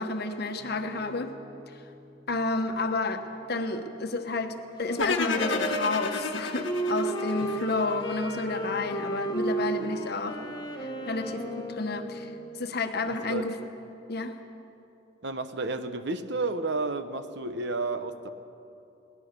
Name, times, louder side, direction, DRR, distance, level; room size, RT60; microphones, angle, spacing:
voice 1, 0.0-1.3 1.7-1.8 2.3-3.2 3.5-10.4 10.8-12.3 12.6-13.5 14.1-14.4, left 3 dB, 50° left, 7 dB, 1.2 m, -31 dB
Piano, 0.6-9.9 10.4-12.4, left 1 dB, 10° right, 3.3 m, -51 dB
Wind instrument woodwind instrument, 4.8-12.6, right 1 dB, 20° left, 1.1 m, -33 dB
sound 1, 5.0-8.1, left 4 dB, 65° left, 1.4 m, -31 dB
voice 2, 15.2-18.3, right 3 dB, 55° right, 10 dB, 1.0 m, -31 dB
22.0 x 18.0 x 6.8 m, 2.7 s
head